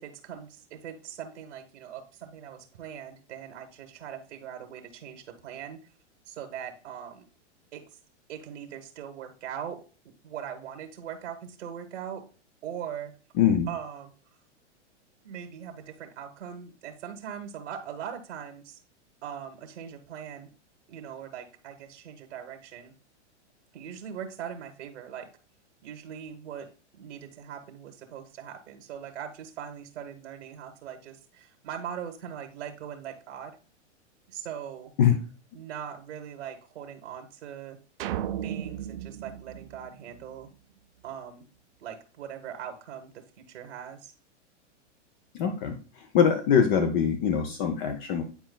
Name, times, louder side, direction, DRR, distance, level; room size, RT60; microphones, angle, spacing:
voice 1, 0.0-5.8 6.3-7.3 7.7-7.8 8.3-9.8 10.2-12.2 12.6-13.1 13.7-14.1 15.2-18.8 19.2-20.5 20.9-22.9 23.7-25.3 25.8-26.7 27.0-33.6 34.3-34.9 35.5-37.8 38.4-40.5 41.0-41.5 41.8-44.1, right 8 dB, 80° right, 5 dB, 1.3 m, -40 dB
voice 2, 13.4-13.7 35.0-35.2 45.3-48.2, left 8 dB, 40° left, 6 dB, 0.8 m, -23 dB
sound 1, 38.0-40.5, right 11 dB, 50° right, 0.7 m, -35 dB
9.7 x 4.4 x 2.3 m, 0.37 s
hypercardioid pair, 140°, 36 cm